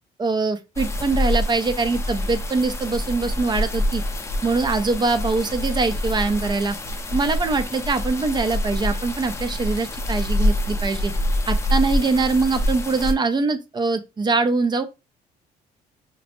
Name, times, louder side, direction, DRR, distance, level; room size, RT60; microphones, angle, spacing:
voice 1, 0.2-4.0 4.4-6.8 7.1-11.1 11.5-14.8, right 3 dB, 25° right, 0.5 m, -23 dB
sound 1, 0.8-13.1, left 1 dB, 15° left, 0.6 m, -26 dB
5.1 x 2.1 x 3.0 m
cardioid pair, 110°, 17 cm